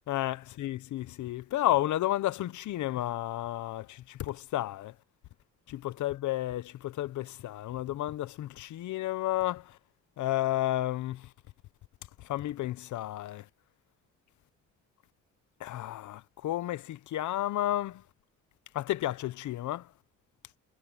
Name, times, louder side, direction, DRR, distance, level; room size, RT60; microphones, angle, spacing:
voice 1, 0.1-4.9 5.7-9.6 10.2-11.3 12.3-13.4 15.6-18.0 18.7-19.9, left 14 dB, 75° left, 0.9 m, -32 dB
cardioid pair, 90°, 30 cm